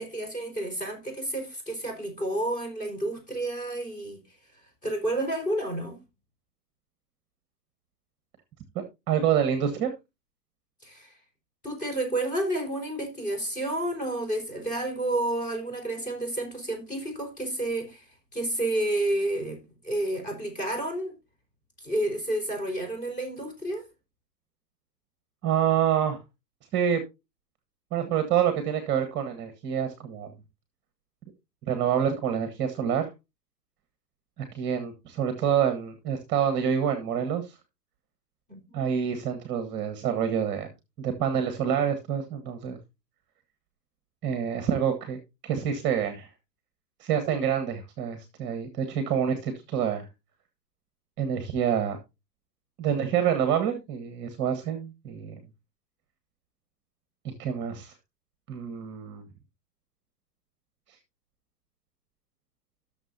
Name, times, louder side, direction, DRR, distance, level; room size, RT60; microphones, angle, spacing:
voice 1, 0.0-4.4 4.8-6.0 10.8-11.2 11.6-21.1 21.8-23.9 38.5-38.8, right 1 dB, 15° left, 4.5 m, -30 dB
voice 2, 8.7-9.9 25.4-26.2 26.7-27.0 27.9-30.3 31.7-33.1 34.4-37.5 38.7-40.7 41.0-42.8 44.2-45.2 45.4-46.3 47.0-50.1 51.2-52.0 52.8-55.3 57.2-57.9 58.5-59.2, right 8 dB, 20° right, 1.3 m, -27 dB
17.0 x 6.9 x 2.7 m
hypercardioid pair, 135°, 49 cm